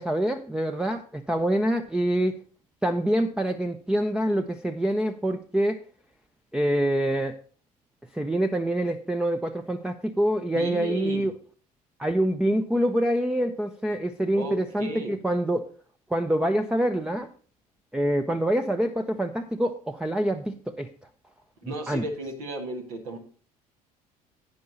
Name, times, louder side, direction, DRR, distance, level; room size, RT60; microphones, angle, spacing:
voice 1, 0.0-2.4 2.8-5.8 6.5-7.4 8.1-11.3 12.0-15.6 16.1-17.3 17.9-20.9 21.6-22.0, right 1 dB, 5° right, 7 dB, 0.6 m, -26 dB
voice 2, 10.5-11.2 14.3-15.1 21.7-23.2, right 1 dB, 70° right, 2 dB, 1.7 m, -34 dB
11.5 x 9.4 x 2.8 m, 0.42 s
figure-of-eight pair, 60°, 19 cm